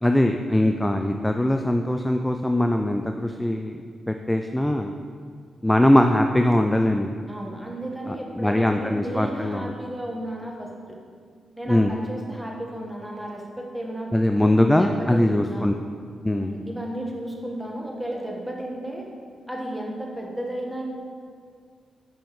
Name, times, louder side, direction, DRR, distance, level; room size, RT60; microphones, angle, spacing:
voice 1, 0.0-3.7 4.1-4.9 5.6-7.2 8.1-9.7 11.7-12.0 14.1-15.7 16.2-16.5, left 1 dB, 10° left, 5 dB, 0.3 m, -21 dB
voice 2, 7.3-11.0 11.6-14.1 14.8-15.7 16.4-19.1 19.5-20.8, right 1 dB, 5° right, -2 dB, 1.3 m, -33 dB
6.9 x 5.1 x 3.1 m, 2.1 s
supercardioid pair, 45°, 0 cm